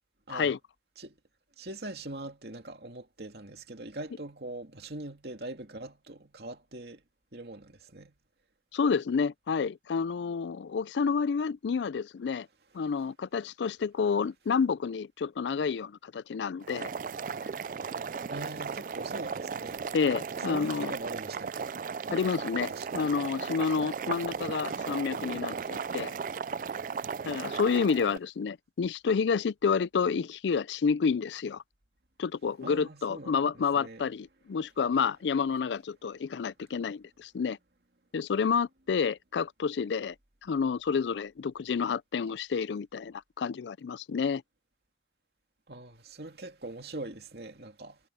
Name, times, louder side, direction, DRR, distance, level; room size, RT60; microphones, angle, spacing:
voice 1, 1.6-7.0 7.3-8.1 18.3-19.9 20.5-21.7 22.7-23.0 32.6-34.0 45.7-48.0, right 2 dB, 65° right, 2.5 m, -42 dB
voice 2, 8.7-12.5 12.7-16.9 19.9-20.9 22.1-26.2 27.3-31.6 32.2-37.6 38.1-40.1 40.4-44.4, left 5 dB, 90° left, 0.4 m, -29 dB
Boiling, 16.6-28.2, right 6 dB, 50° right, 0.3 m, -36 dB
head